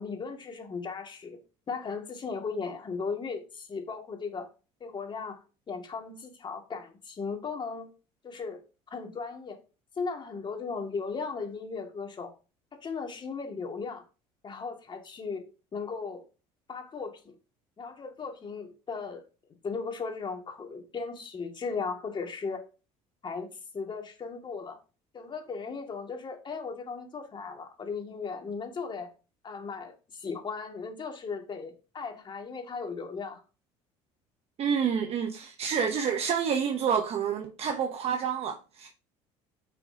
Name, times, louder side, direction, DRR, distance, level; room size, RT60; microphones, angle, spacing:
voice 1, 0.0-1.4 1.7-4.5 4.8-5.4 5.7-7.9 8.2-8.6 8.9-9.6 10.0-12.3 12.7-14.0 14.4-16.2 16.7-17.3 17.8-19.2 19.6-22.6 23.2-24.8 25.1-29.1 29.4-33.4, left 5 dB, 35° left, 2.1 m, -37 dB
voice 2, 34.6-38.9, right 7 dB, 50° right, 0.9 m, -28 dB
9.0 x 5.8 x 2.8 m
supercardioid pair, 90°, 14 cm